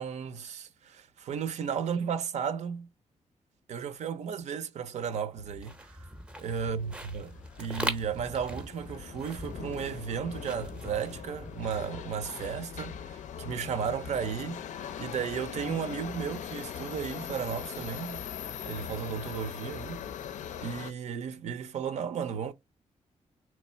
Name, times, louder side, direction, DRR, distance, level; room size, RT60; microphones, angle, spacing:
voice 1, 0.0-2.9 3.7-5.8 6.4-7.3 7.6-14.6 15.0-18.2 18.7-20.0 20.6-22.5, right 7 dB, 65° right, 0.6 m, -34 dB
sound 1, 5.4-12.6, right 1 dB, 10° right, 0.6 m, -41 dB
Subway metro underground, 6.4-20.9, left 8 dB, 75° left, 0.5 m, -41 dB
3.3 x 3.2 x 4.4 m
wide cardioid pair, 170°, 13 cm